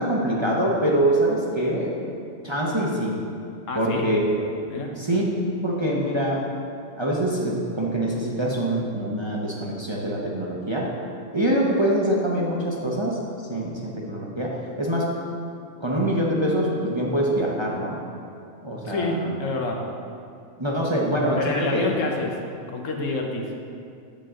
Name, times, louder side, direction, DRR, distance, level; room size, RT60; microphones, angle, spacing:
voice 1, 0.0-2.2 2.4-3.2 3.7-4.2 4.9-5.2 5.6-6.4 7.0-10.8 11.3-13.2 13.5-15.1 15.8-18.0 18.6-19.3 20.6-21.9, right 1 dB, 25° right, -3 dB, 0.8 m, -24 dB
voice 2, 3.7-4.1 4.7-4.9 18.8-19.8 21.4-22.3 22.7-23.5, left 3 dB, 80° left, 1 dB, 1.3 m, -27 dB
8.4 x 7.5 x 3.7 m, 2.5 s
omnidirectional pair, 1.3 m